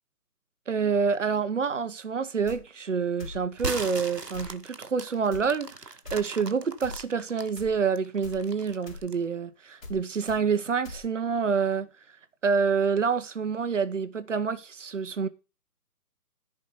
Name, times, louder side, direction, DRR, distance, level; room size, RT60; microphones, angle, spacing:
voice 1, 0.7-11.9 12.4-15.3, right 5 dB, 50° right, 1.1 m, -27 dB
sound 1, 2.4-2.6 3.2-3.4 4.3-4.6 5.3-5.4 6.0-6.2 6.8-7.0 7.6-7.8 8.2-8.4 8.9-9.0 9.8-10.0 10.3-10.4 10.8-11.0, left 3 dB, 55° left, 4.0 m, -41 dB
sound 2, 3.5-7.5 8.0-9.2, right 3 dB, 80° right, 1.6 m, -37 dB
14.0 x 5.2 x 5.7 m
figure-of-eight pair, 145°, 47 cm